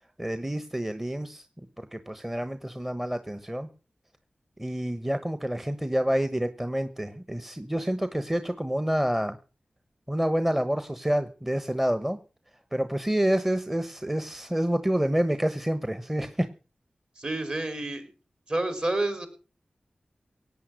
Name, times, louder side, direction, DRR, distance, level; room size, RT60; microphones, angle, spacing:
voice 1, 0.2-3.7 4.6-9.4 10.1-12.2 12.7-16.5, right 1 dB, 10° right, 11 dB, 1.0 m, -28 dB
voice 2, 17.2-18.0 18.5-19.3, right 2 dB, 45° right, 8 dB, 4.5 m, -29 dB
17.5 x 8.9 x 6.4 m, 0.36 s
wide cardioid pair, 70°, 3 cm